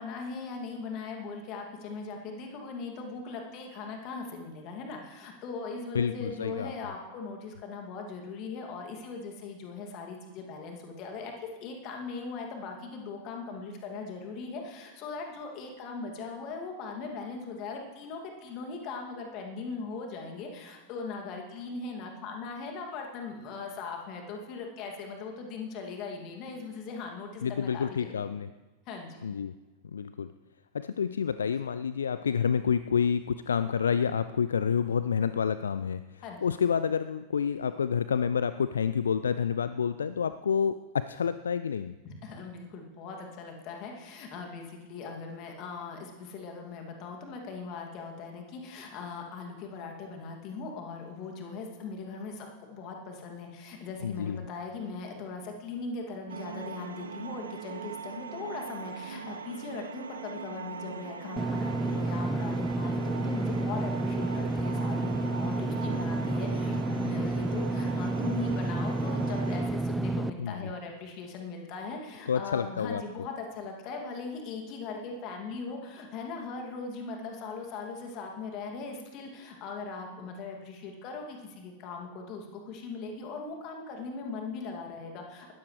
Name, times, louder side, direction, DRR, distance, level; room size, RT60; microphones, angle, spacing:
voice 1, 0.0-28.2 28.9-29.2 36.2-36.5 42.0-85.5, left 4 dB, 40° left, 2 dB, 2.5 m, -39 dB
voice 2, 5.9-6.7 27.4-28.5 29.2-29.5 29.9-30.3 30.7-41.9 54.0-54.4 70.4-70.6 72.3-73.0, left 7 dB, 70° left, 13 dB, 0.3 m, -29 dB
sound 1, 56.3-69.7, right 6 dB, 70° right, 0.6 m, -41 dB
Engine / Mechanisms, 61.4-70.3, right 2 dB, 5° right, 0.4 m, -30 dB
19.5 x 14.0 x 3.3 m, 1.2 s
figure-of-eight pair, 90°, 0 cm